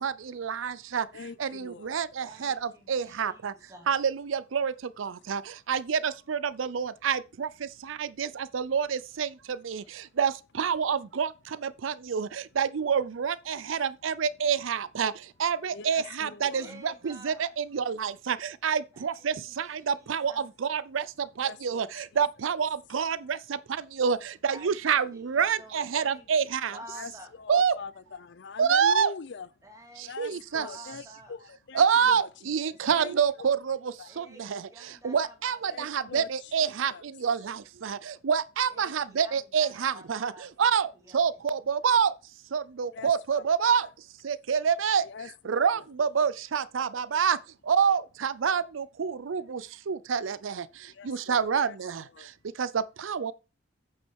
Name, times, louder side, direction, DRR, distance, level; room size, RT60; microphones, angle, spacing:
voice 1, 0.0-1.0 1.4-2.5 2.9-3.5 3.9-4.7 5.0-5.4 5.7-7.5 7.9-9.3 9.6-9.8 10.2-10.3 10.6-11.3 11.6-12.3 12.6-15.1 15.4-21.0 21.4-23.4 24.0-26.8 27.5-27.8 28.6-29.1 30.2-30.7 31.7-33.8 34.2-34.6 35.0-36.9 37.2-40.3 40.6-42.1 42.5-43.9 44.2-45.0 45.5-47.4 47.7-49.6 49.9-50.6 51.1-52.0 52.6-52.7 53.0-53.3, right 7 dB, 90° right, 0.5 m, -27 dB
voice 2, 1.1-2.0 7.9-8.0 15.7-16.8 21.4-22.0 26.9-29.5 30.0-33.6 34.0-34.3 35.7-36.5 36.9-37.0 42.9-43.9 45.0-45.8 50.9-51.8 52.0-52.3, left 5 dB, 65° left, 0.6 m, -44 dB
voice 3, 2.2-3.9 16.5-17.5 18.9-20.5 24.5-27.3 29.6-31.3 34.0-36.1 38.7-41.4, right 1 dB, 15° right, 2.8 m, -51 dB
8.6 x 6.1 x 4.6 m
head